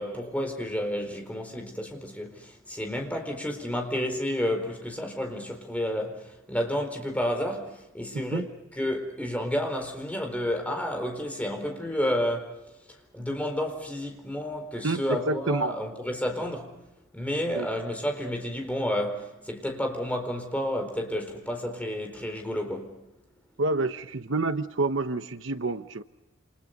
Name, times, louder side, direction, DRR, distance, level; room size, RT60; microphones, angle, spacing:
voice 1, 0.0-8.5 8.8-12.6 12.9-16.7 17.1-23.0, equal, 5° left, 4.4 m, -31 dB
voice 2, 8.1-8.5 14.8-15.7 17.5-17.7 23.6-26.0, right 2 dB, 65° right, 1.0 m, -28 dB
29.0 x 28.0 x 5.3 m
head